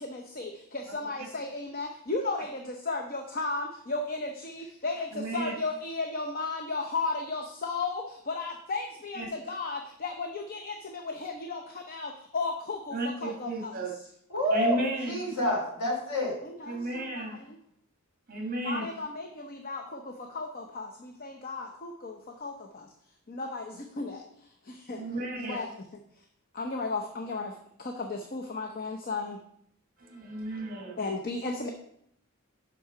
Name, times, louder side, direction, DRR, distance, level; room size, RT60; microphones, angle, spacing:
voice 1, 0.0-14.1 16.4-17.6 18.6-22.9 23.3-26.0 26.5-29.4 31.0-31.7, left 3 dB, 45° left, 3 dB, 0.7 m, -35 dB
voice 2, 5.1-5.5 9.2-9.3 12.9-13.9 14.5-15.2 16.7-17.4 18.3-18.8 24.9-25.6 30.0-31.0, right 2 dB, 40° right, 2 dB, 1.6 m, -33 dB
voice 3, 14.3-16.4, left 1 dB, 85° left, -1 dB, 3.0 m, -28 dB
7.2 x 6.1 x 4.9 m, 0.70 s
head